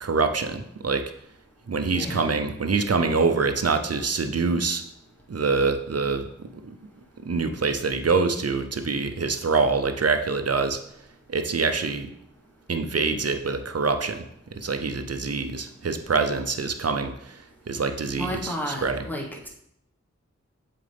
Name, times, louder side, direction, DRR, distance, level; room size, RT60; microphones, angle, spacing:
voice 1, 0.0-1.0 1.7-4.8 5.3-6.2 6.5-6.8 7.2-10.8 11.3-12.1 12.7-14.3 14.5-19.0, right 4 dB, 55° right, 7 dB, 0.7 m, -25 dB
voice 2, 1.9-2.3 18.2-19.5, equal, 5° left, -1 dB, 1.4 m, -32 dB
7.4 x 4.3 x 3.4 m, 0.75 s
wide cardioid pair, 40°, 30 cm